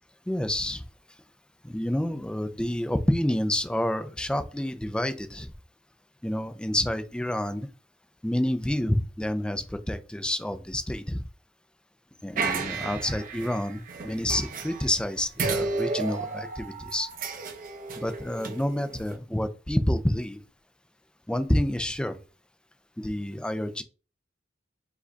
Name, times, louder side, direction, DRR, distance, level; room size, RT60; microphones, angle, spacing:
voice 1, 0.3-0.8 1.6-5.5 6.2-7.7 8.2-11.2 12.2-17.1 18.0-20.4 21.3-22.2 23.0-23.8, left 1 dB, 5° left, 9 dB, 0.3 m, -28 dB
sound 1, 12.4-15.0 15.4-19.1, right 4 dB, 45° right, 0.7 m, -33 dB
4.8 x 2.2 x 3.9 m, 0.36 s
head